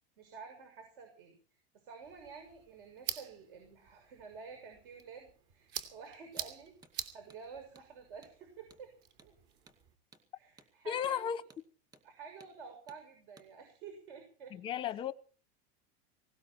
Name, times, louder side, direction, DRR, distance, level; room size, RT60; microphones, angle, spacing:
voice 1, 0.2-1.4 1.7-6.7 7.1-8.9 9.2-9.4 10.3-11.3 12.0-14.5, right 5 dB, 65° right, 6.4 m, -50 dB
sound 1, 2.0-9.9, right 8 dB, 45° right, 3.0 m, -47 dB
Hammer, 6.4-6.5 6.8-7.0 7.3-7.4 7.8-7.9 8.2-8.4 8.7-8.9 9.2-9.3 9.7-9.8 10.1-10.3 10.6-10.7 11.0-11.2 11.5-11.7 11.9-12.1 12.4-12.6 12.9-13.0 13.4-13.5, right 3 dB, 10° right, 2.1 m, -61 dB
voice 2, 10.9-11.4 14.5-15.1, left 9 dB, 15° left, 0.7 m, -34 dB
19.0 x 17.5 x 4.4 m
supercardioid pair, 175°, 30 cm